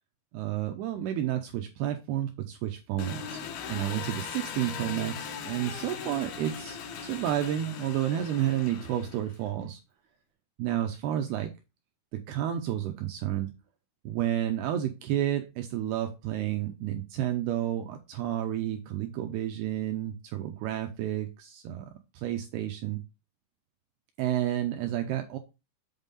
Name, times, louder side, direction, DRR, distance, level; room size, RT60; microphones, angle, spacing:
voice 1, 0.3-3.4 3.7-9.8 10.6-11.5 12.1-13.5 14.1-23.0 24.2-25.4, right 12 dB, 85° right, 5 dB, 2.4 m, -31 dB
Engine, 3.0-9.5, left 6 dB, 70° left, 2.6 m, -39 dB
8.1 x 3.7 x 5.4 m, 0.27 s
omnidirectional pair, 5.4 m